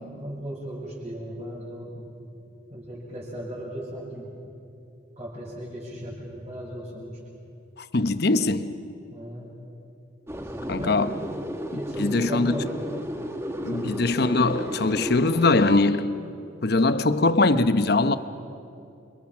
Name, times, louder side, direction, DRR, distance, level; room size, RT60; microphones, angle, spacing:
voice 1, 0.2-2.1 2.7-4.3 5.2-7.2 9.1-9.5 10.5-11.2 11.7-12.8 13.7-14.1, equal, 30° right, 6.7 m, -36 dB
voice 2, 7.8-8.8 10.7-11.1 12.0-12.6 13.6-16.2 16.6-18.2, left 2 dB, 55° left, 0.9 m, -22 dB
sound 1, 10.3-15.8, equal, 15° right, 1.3 m, -33 dB
29.5 x 26.0 x 6.1 m
head